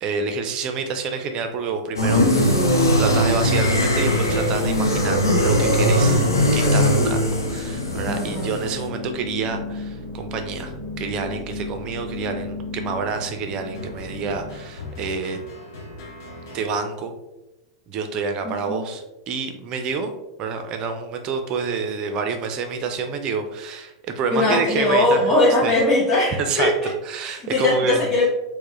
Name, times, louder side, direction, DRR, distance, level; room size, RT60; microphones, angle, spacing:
voice 1, 0.0-6.3 6.5-15.4 16.5-17.1 17.9-20.1 20.4-25.3 25.6-25.7 26.4-26.7 27.1-28.0, right 5 dB, 40° right, 6 dB, 0.5 m, -28 dB
sound 1, 2.0-8.8, equal, 85° left, 0.6 m, -20 dB
sound 2, 3.9-16.7, left 2 dB, 60° left, 0.9 m, -34 dB
voice 2, 8.1-8.5 18.4-18.8 24.3-26.9 27.2-28.3, left 2 dB, 20° left, -8 dB, 1.1 m, -20 dB
4.5 x 2.1 x 3.1 m, 0.97 s
figure-of-eight pair, 90°, 2 cm